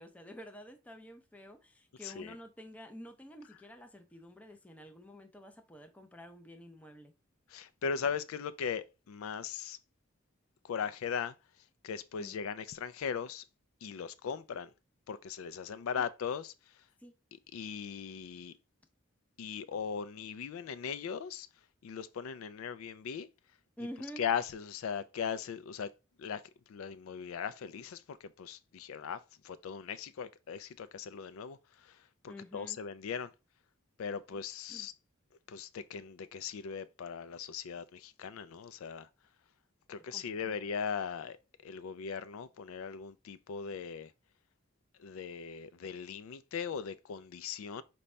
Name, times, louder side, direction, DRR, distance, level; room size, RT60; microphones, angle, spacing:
voice 1, 0.0-7.1 12.2-12.4 15.9-16.1 17.0-17.1 23.8-24.2 32.3-32.8 34.3-34.4 34.7-34.9 40.1-40.6, equal, 5° left, 0.5 m, -49 dB
voice 2, 2.0-2.4 7.5-9.8 10.6-11.3 11.8-13.4 13.8-14.7 15.1-16.8 17.5-18.6 19.4-21.5 21.8-23.3 24.2-25.9 26.2-26.4 26.7-33.3 34.0-34.9 35.5-39.1 39.9-41.4 41.6-44.1 45.0-47.8, left 6 dB, 80° left, 0.4 m, -39 dB
5.1 x 2.2 x 4.2 m
head